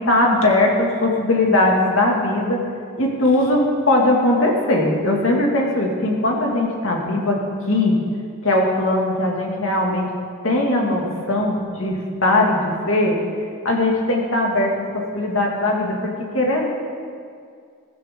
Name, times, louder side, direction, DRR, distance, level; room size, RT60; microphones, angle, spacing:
voice 1, 0.0-2.6 3.0-7.4 7.7-8.0 8.4-10.1 10.4-13.2 13.6-16.7, left 1 dB, 65° left, -1 dB, 2.3 m, -19 dB
15.5 x 15.5 x 3.8 m, 2.2 s
head